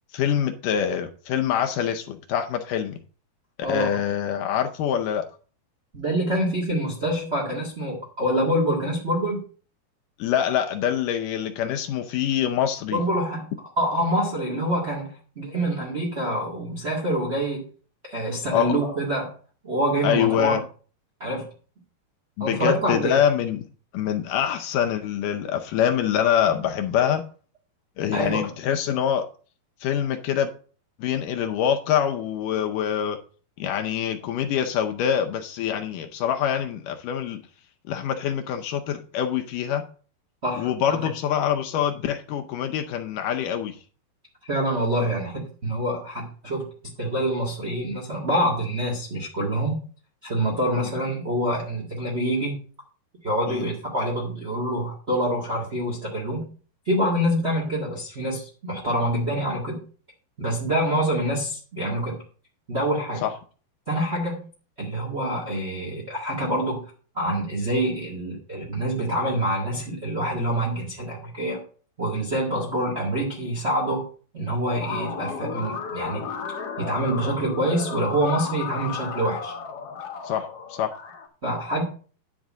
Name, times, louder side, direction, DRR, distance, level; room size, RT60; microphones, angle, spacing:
voice 1, 0.1-3.0 3.7-5.3 10.2-13.0 18.5-18.8 20.0-20.6 22.4-23.6 23.9-27.2 28.0-29.2 29.8-30.5 31.0-33.2 33.6-37.4 37.9-39.8 40.6-43.8 50.8-50.9 53.5-53.6 63.2-63.3 80.2-80.9, left 9 dB, 80° left, 1.9 m, -25 dB
voice 2, 5.9-9.4 12.9-17.6 18.0-19.3 19.6-20.6 21.2-21.4 22.4-23.2 28.1-28.5 40.4-41.1 44.4-46.6 47.0-49.8 50.2-52.6 53.2-56.5 56.8-59.8 60.4-62.2 62.7-63.2 63.9-64.5 64.8-66.8 67.1-71.6 72.0-74.0 74.3-76.3 76.8-79.5 81.4-81.8, right 1 dB, 40° right, 0.9 m, -26 dB
sound 1, 74.6-81.3, left 6 dB, 60° left, 1.6 m, -34 dB
10.5 x 3.9 x 7.3 m
omnidirectional pair, 4.5 m